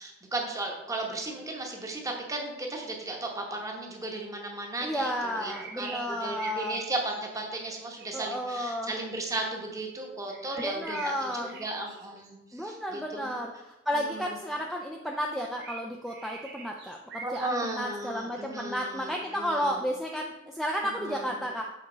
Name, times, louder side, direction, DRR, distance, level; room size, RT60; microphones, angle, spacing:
voice 1, 0.0-13.3 13.9-14.4 17.2-19.8 21.0-21.4, right 2 dB, 15° right, 1 dB, 1.0 m, -35 dB
voice 2, 4.8-6.8 8.1-8.9 10.6-11.6 12.5-13.5 13.9-21.6, equal, ahead, 0 dB, 0.4 m, -32 dB
sound 1, 5.2-8.1 10.3-12.3 15.4-17.5, right 4 dB, 55° right, 0.9 m, -44 dB
6.8 x 4.3 x 3.8 m, 1.0 s
head